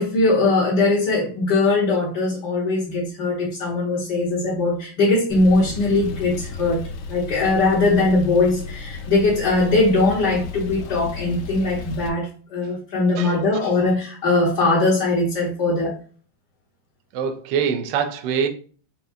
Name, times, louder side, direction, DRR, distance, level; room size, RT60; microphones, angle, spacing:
voice 1, 0.0-6.8 7.1-16.0, left 2 dB, 60° left, 1.5 m, -20 dB
Male speech man speaking / Car / Idling, 5.3-12.1, left 4 dB, 80° left, 1.3 m, -34 dB
voice 2, 13.2-13.7 17.1-18.5, right 7 dB, 70° right, 1.1 m, -25 dB
5.0 x 2.8 x 2.6 m
omnidirectional pair, 2.3 m